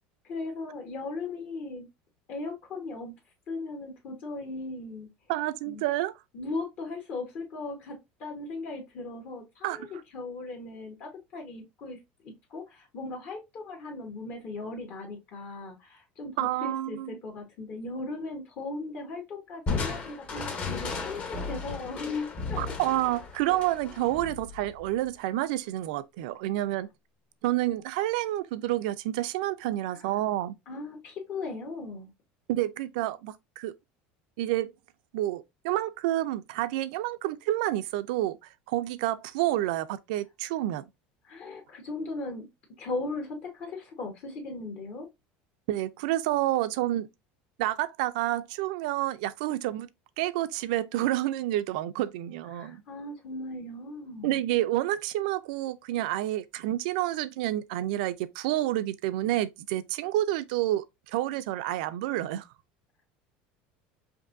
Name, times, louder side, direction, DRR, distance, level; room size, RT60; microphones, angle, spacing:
voice 1, 0.2-1.9 2.3-3.1 3.5-5.1 5.6-5.8 6.3-22.7 29.9-30.1 30.7-32.1 41.2-42.5 42.8-45.1 52.5-54.4, left 3 dB, 45° left, 1.3 m, -38 dB
voice 2, 5.3-6.1 9.6-9.8 16.4-17.2 22.6-26.9 27.4-30.5 32.5-33.7 34.4-34.7 35.1-38.4 38.7-40.8 45.7-47.1 47.6-49.9 50.2-52.8 54.2-62.5, right 14 dB, 80° right, 0.4 m, -29 dB
Crushing, 19.7-25.1, left 4 dB, 30° left, 0.9 m, -35 dB
5.1 x 2.7 x 2.6 m
cardioid pair, 150°, 5 cm